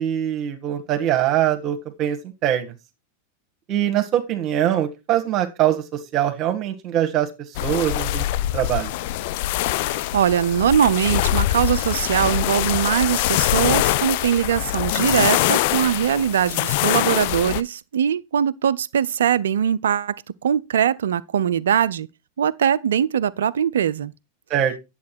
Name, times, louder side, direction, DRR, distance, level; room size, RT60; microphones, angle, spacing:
voice 1, 0.0-2.7 3.7-7.3 7.6-8.2 8.5-8.9 24.5-24.7, right 11 dB, 35° right, 1.5 m, -22 dB
sound 1, 7.5-17.6, left 15 dB, 50° left, 0.5 m, -23 dB
voice 2, 9.9-20.2 20.4-22.1 22.4-24.1, right 9 dB, 65° right, 0.5 m, -21 dB
10.5 x 7.6 x 4.4 m
figure-of-eight pair, 90°, 0 cm